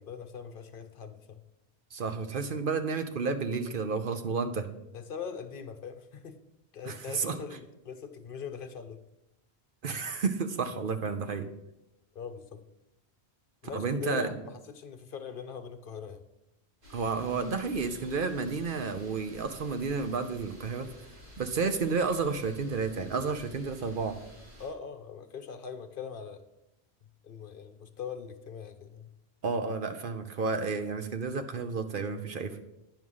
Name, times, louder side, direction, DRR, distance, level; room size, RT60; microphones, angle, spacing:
voice 1, 0.0-1.4 4.9-6.4 6.7-9.0 12.1-12.6 13.6-16.2 24.6-26.4 27.2-29.1, left 6 dB, 60° left, 9 dB, 0.8 m, -41 dB
voice 2, 1.9-4.7 6.9-7.4 9.8-11.5 13.7-14.4 16.9-20.9 21.4-24.2 29.4-32.6, right 4 dB, 55° right, 8 dB, 0.9 m, -31 dB
sound 1, 16.8-24.7, equal, 70° right, 3.0 m, -51 dB
9.2 x 6.3 x 5.5 m, 0.92 s
omnidirectional pair, 1.1 m